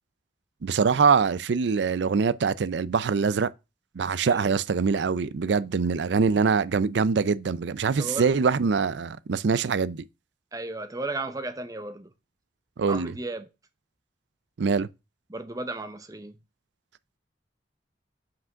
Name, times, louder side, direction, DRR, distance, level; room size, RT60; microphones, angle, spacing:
voice 1, 0.6-3.5 4.0-10.0 12.8-13.1 14.6-14.9, right 5 dB, 75° right, 0.4 m, -24 dB
voice 2, 4.2-4.5 8.0-8.3 10.5-12.1 12.9-13.5 15.3-16.3, right 2 dB, 20° right, 0.7 m, -34 dB
6.0 x 5.0 x 5.6 m
head